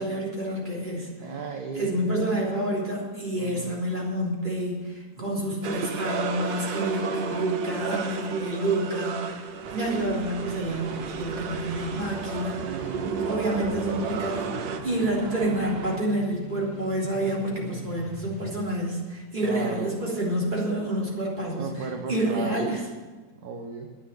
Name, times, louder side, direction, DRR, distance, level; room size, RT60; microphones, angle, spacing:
voice 1, 0.0-1.1 1.8-12.9 13.2-14.6 14.8-22.8, right 1 dB, 25° right, -4 dB, 3.6 m, -28 dB
voice 2, 1.2-2.2 3.4-3.7 12.6-13.1 19.4-19.9 21.6-22.7 23.4-23.9, right 4 dB, 60° right, 4 dB, 1.5 m, -35 dB
sound 1, 5.6-14.8, right 5 dB, 75° right, 1.6 m, -32 dB
sound 2, 9.6-16.0, right 6 dB, 90° right, 0.5 m, -40 dB
sound 3, 10.2-18.7, left 1 dB, 20° left, 1.1 m, -44 dB
10.5 x 9.7 x 8.5 m, 1.3 s
omnidirectional pair, 2.1 m